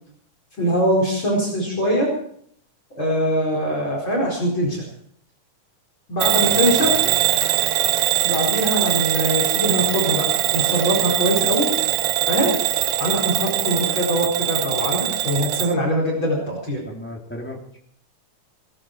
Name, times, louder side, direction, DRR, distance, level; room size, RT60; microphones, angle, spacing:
voice 1, 0.6-2.1 3.0-4.8 6.1-6.9 8.2-11.7 12.3-12.5 13.0-16.8, equal, 35° left, -2 dB, 5.3 m, -22 dB
Bell / Alarm, 6.2-15.7, right 13 dB, 75° right, 1.8 m, -22 dB
voice 2, 6.5-7.1 16.9-17.8, left 1 dB, 5° left, 0 dB, 2.3 m, -36 dB
18.5 x 15.5 x 4.6 m, 0.66 s
omnidirectional pair, 3.7 m